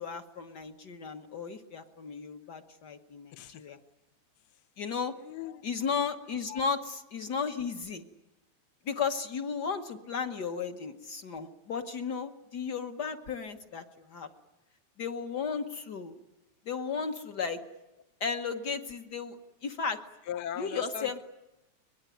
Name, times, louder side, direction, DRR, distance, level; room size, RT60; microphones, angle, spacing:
voice 1, 0.0-3.8 4.8-5.1 5.6-8.0 8.8-14.3 15.0-16.2 16.7-17.6 18.2-19.4 19.6-20.0 20.6-21.2, left 5 dB, 55° left, 6 dB, 1.1 m, -34 dB
voice 2, 3.3-3.6 5.2-5.7 6.5-6.6 20.2-21.2, left 10 dB, 85° left, 9 dB, 0.9 m, -39 dB
23.0 x 21.5 x 9.3 m, 0.96 s
omnidirectional pair, 3.3 m